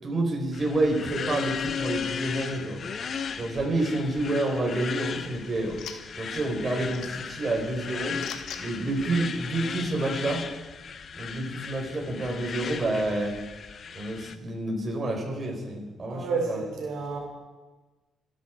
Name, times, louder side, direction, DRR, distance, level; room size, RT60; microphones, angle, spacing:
voice 1, 0.0-2.8 3.4-5.8 6.1-8.2 8.6-10.4 11.2-13.4 13.9-16.6, right 2 dB, 35° right, 0 dB, 4.7 m, -29 dB
sound 1, 0.5-14.4, left 6 dB, 50° left, 0.9 m, -36 dB
sound 2, 4.7-10.1, left 7 dB, 80° left, 1.6 m, -46 dB
voice 2, 16.1-17.2, right 4 dB, 75° right, -1 dB, 4.4 m, -30 dB
25.5 x 11.0 x 4.7 m, 1.2 s
cardioid pair, 90°, 0 cm